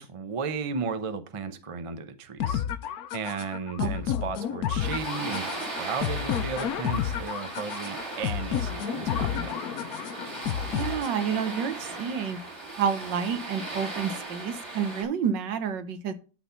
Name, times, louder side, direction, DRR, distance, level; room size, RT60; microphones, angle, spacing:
voice 1, 0.0-2.6 3.1-9.6, right 5 dB, 45° right, 0.4 m, -34 dB
sound 1, 2.4-11.4, left 10 dB, 65° left, 1.1 m, -31 dB
sound 2, 4.8-15.0, right 2 dB, 20° right, 3.8 m, -37 dB
voice 2, 10.7-12.4 12.8-16.1, right 7 dB, 80° right, 1.7 m, -29 dB
12.0 x 4.1 x 5.7 m
omnidirectional pair, 1.9 m